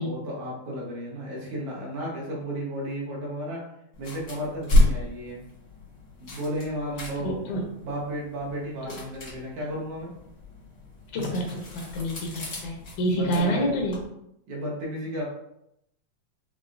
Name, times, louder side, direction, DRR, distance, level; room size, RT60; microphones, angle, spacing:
voice 1, 0.0-3.6 4.0-5.4 6.2-7.4 7.8-10.1 13.2-13.8 14.5-15.2, equal, 80° right, -4 dB, 2.5 m, -33 dB
sound 1, 3.9-14.0, left 1 dB, 55° left, 0.8 m, -30 dB
voice 2, 7.2-7.6 8.9-9.0 11.1-14.0, equal, 80° left, 0 dB, 1.3 m, -28 dB
5.9 x 2.1 x 2.5 m, 0.80 s
omnidirectional pair, 3.4 m